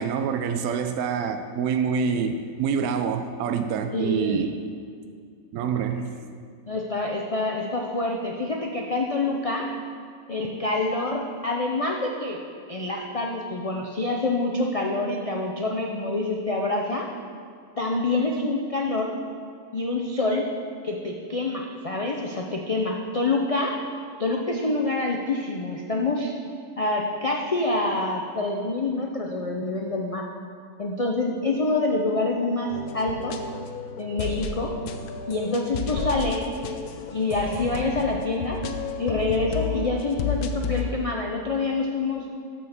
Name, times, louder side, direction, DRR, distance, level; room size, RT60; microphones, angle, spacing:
voice 1, 0.0-4.6 5.5-6.1, right 6 dB, 75° right, 7 dB, 1.0 m, -26 dB
voice 2, 3.9-4.4 6.7-9.7 10.3-12.4 12.7-17.1 17.8-19.1 19.7-20.5 20.8-23.7 24.2-26.3 26.8-30.2 30.8-33.4 34.0-34.7 35.3-36.4 37.1-38.6 39.0-42.2, left 2 dB, 70° left, 0 dB, 0.3 m, -26 dB
sound 1, 32.7-40.9, left 5 dB, 85° left, 1.1 m, -32 dB
6.9 x 6.4 x 6.5 m, 2.3 s
omnidirectional pair, 1.6 m